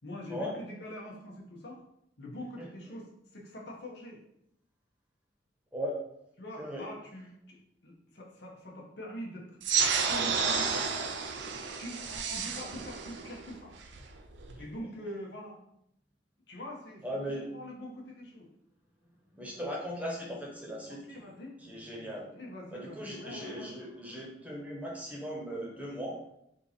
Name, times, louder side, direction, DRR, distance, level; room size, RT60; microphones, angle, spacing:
voice 1, 0.0-1.8 2.2-4.2 6.4-9.6 10.0-11.1 11.8-13.7 14.6-15.6 16.5-18.5 20.9-21.6 22.1-23.7, equal, 65° left, -2 dB, 1.0 m, -44 dB
sound 1, 9.6-14.6, right 6 dB, 75° right, 0.5 m, -31 dB
voice 2, 17.0-17.4 19.4-21.2 21.6-22.2 22.7-26.2, equal, 10° right, -3 dB, 1.0 m, -38 dB
3.6 x 2.8 x 4.0 m, 0.78 s
head